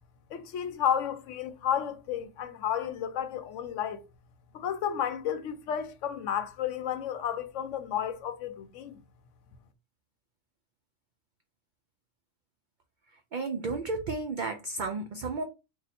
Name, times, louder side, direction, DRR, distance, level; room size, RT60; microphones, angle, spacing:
voice 1, 0.3-4.0 4.5-8.9, left 9 dB, 70° left, 0.9 m, -32 dB
voice 2, 13.3-15.4, right 3 dB, 80° right, 0.4 m, -32 dB
2.7 x 2.3 x 4.1 m
omnidirectional pair, 1.4 m